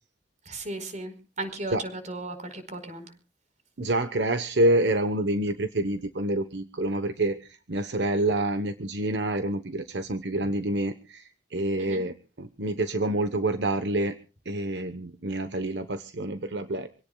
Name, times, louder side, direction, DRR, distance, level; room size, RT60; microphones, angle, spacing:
voice 1, 0.5-3.1 11.8-12.0, right 2 dB, 45° right, 9 dB, 4.7 m, -36 dB
voice 2, 3.8-14.1 14.4-16.9, right 1 dB, 70° right, 9 dB, 1.1 m, -27 dB
27.0 x 17.5 x 2.3 m, 0.36 s
head